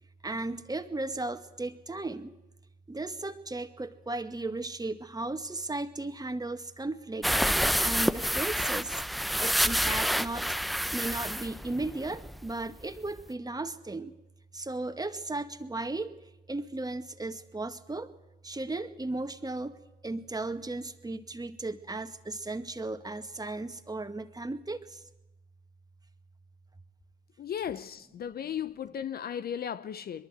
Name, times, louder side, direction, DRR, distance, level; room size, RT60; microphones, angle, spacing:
voice 1, 0.2-2.3 2.9-7.3 7.8-9.0 9.4-10.5 10.9-14.1 14.5-16.1 16.5-18.1 18.4-19.7 20.0-25.0, right 2 dB, 20° right, 2.0 m, -35 dB
sound 1, 7.2-12.5 12.8-12.9 13.2-13.3, equal, ahead, 0.8 m, -28 dB
voice 2, 27.4-30.3, left 9 dB, 50° left, 0.8 m, -36 dB
22.5 x 22.5 x 8.0 m
hypercardioid pair, 50°, 21 cm